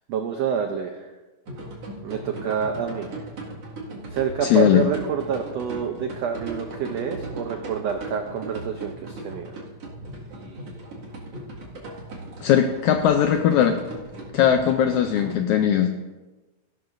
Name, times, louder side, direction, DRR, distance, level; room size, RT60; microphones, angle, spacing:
voice 1, 0.1-1.1 2.0-3.1 4.1-9.6, right 7 dB, 85° right, 4 dB, 1.4 m, -27 dB
sound 1, 1.5-15.3, right 2 dB, 50° right, 2.8 m, -37 dB
voice 2, 4.4-4.8 12.4-13.8 14.3-15.9, left 9 dB, 80° left, 5 dB, 1.7 m, -19 dB
16.0 x 12.0 x 2.6 m, 1.2 s
omnidirectional pair, 3.9 m